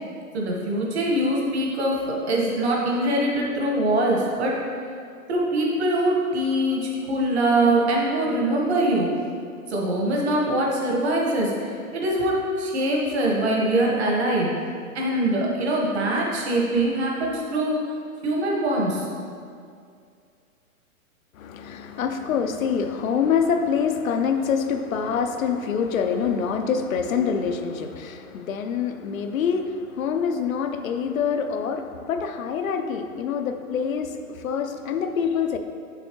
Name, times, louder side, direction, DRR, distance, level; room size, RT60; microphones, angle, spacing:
voice 1, 0.3-4.5 5.3-9.1 9.7-14.5 14.9-17.7 18.2-19.1, right 1 dB, 45° right, -2 dB, 1.3 m, -23 dB
voice 2, 21.4-35.6, left 6 dB, 65° left, 7 dB, 0.6 m, -25 dB
6.8 x 6.3 x 3.0 m, 2.3 s
hypercardioid pair, 175°, 43 cm